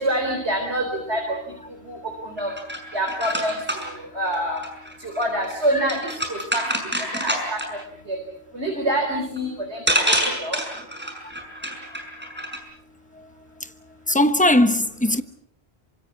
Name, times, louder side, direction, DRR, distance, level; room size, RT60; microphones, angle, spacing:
voice 1, 0.0-1.5 1.9-2.5 2.9-4.7 5.0-6.6 7.1-7.6 8.1-8.2 8.5-10.6, right 1 dB, 75° right, 4.4 m, -26 dB
sound 1, 2.4-7.8 9.4-9.5 9.9-12.6, equal, 10° right, 5.7 m, -27 dB
voice 2, 14.1-15.2, left 1 dB, 5° left, 1.1 m, -18 dB
27.0 x 25.0 x 6.2 m
omnidirectional pair, 1.1 m